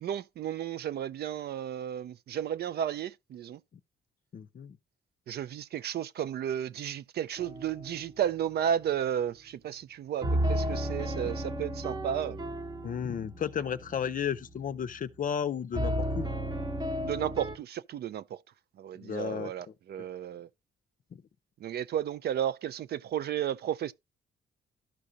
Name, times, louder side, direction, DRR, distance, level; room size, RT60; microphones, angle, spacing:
voice 1, 0.0-3.6 5.3-12.4 17.0-18.4 18.8-20.5 21.6-23.9, right 10 dB, 55° right, 0.4 m, -33 dB
voice 2, 4.3-4.8 12.8-16.2 19.0-19.5 21.1-21.2, left 8 dB, 45° left, 0.5 m, -33 dB
sound 1, 7.4-8.0 10.2-15.0 15.7-17.6, right 1 dB, 20° right, 0.9 m, -33 dB
13.0 x 4.9 x 2.6 m
cardioid pair, 90°, 20 cm